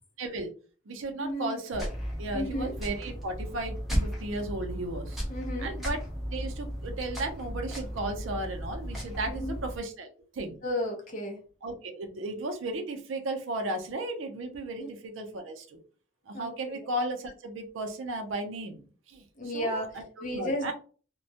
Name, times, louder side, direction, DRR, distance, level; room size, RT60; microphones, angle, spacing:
voice 1, 0.2-0.5 0.9-1.9 2.2-5.2 5.6-6.0 6.3-10.1 10.3-10.6 11.6-15.8 16.3-18.8 19.1-19.2 19.5-20.7, right 2 dB, 80° right, 5 dB, 0.5 m, -35 dB
voice 2, 1.2-1.6 2.3-2.7 5.3-5.7 9.3-9.6 10.6-11.4 14.8-14.9 16.3-16.9 19.4-20.7, equal, 40° left, 1 dB, 0.6 m, -34 dB
sound 1, 1.7-9.8, equal, ahead, 0.6 m, -35 dB
2.2 x 2.1 x 2.7 m, 0.39 s
head